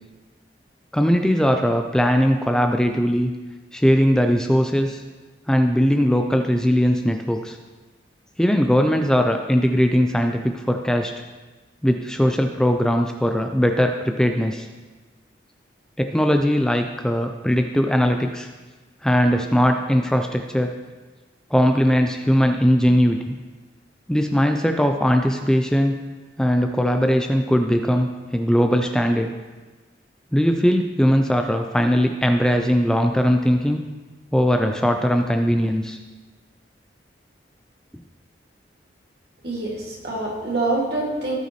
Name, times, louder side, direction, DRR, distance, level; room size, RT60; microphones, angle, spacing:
voice 1, 0.9-3.3 3.7-5.0 5.5-7.6 8.4-11.1 11.8-14.7 16.0-18.5 19.0-20.7 21.5-23.4 24.1-26.0 26.4-29.3 30.3-33.8 34.3-36.0, equal, 5° left, 5 dB, 0.3 m, -20 dB
voice 2, 39.4-41.4, right 2 dB, 65° right, -3 dB, 2.2 m, -25 dB
16.5 x 5.6 x 3.1 m, 1.3 s
head